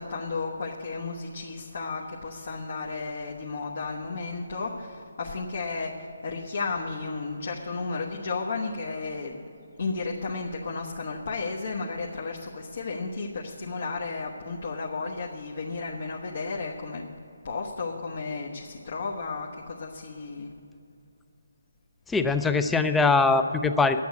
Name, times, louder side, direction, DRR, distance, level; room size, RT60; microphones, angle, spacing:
voice 1, 0.0-9.4 9.8-17.0 17.4-20.5, left 4 dB, 60° left, -2 dB, 1.1 m, -33 dB
voice 2, 22.1-24.0, left 4 dB, 5° left, 9 dB, 0.4 m, -22 dB
10.5 x 8.5 x 8.3 m, 2.7 s
hypercardioid pair, 165°, 0 cm